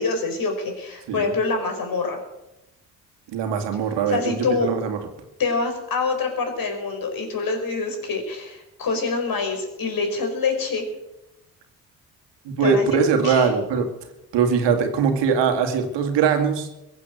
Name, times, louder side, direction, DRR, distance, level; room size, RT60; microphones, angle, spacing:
voice 1, 0.0-2.2 4.1-4.7 5.4-10.8 12.6-12.8 13.2-13.5, left 4 dB, 50° left, 4 dB, 5.1 m, -25 dB
voice 2, 3.3-5.0 12.5-13.8 14.3-16.7, right 6 dB, 65° right, 5 dB, 2.3 m, -21 dB
22.5 x 8.4 x 6.6 m, 0.93 s
hypercardioid pair, 50°, 46 cm